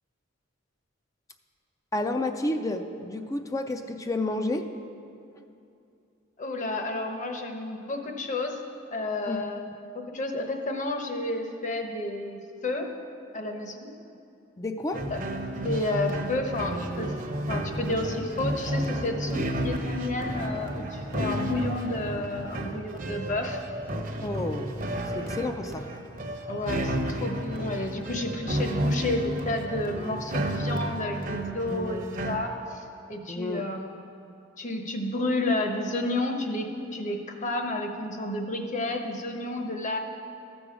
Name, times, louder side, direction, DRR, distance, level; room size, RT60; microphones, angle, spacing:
voice 1, 1.9-4.7 9.3-9.4 14.6-15.0 24.2-24.7 25.1-25.8 33.3-33.6, left 2 dB, 15° left, 5 dB, 0.4 m, -30 dB
voice 2, 6.4-8.6 8.9-9.7 10.1-12.9 13.3-13.9 15.1-15.2 15.5-17.1 17.5-23.6 26.5-34.0 34.6-36.7 36.9-40.0, left 2 dB, 40° left, 4 dB, 1.0 m, -31 dB
sound 1, 14.9-32.4, equal, 45° right, 0.8 m, -32 dB
14.0 x 6.2 x 5.0 m, 2.6 s
head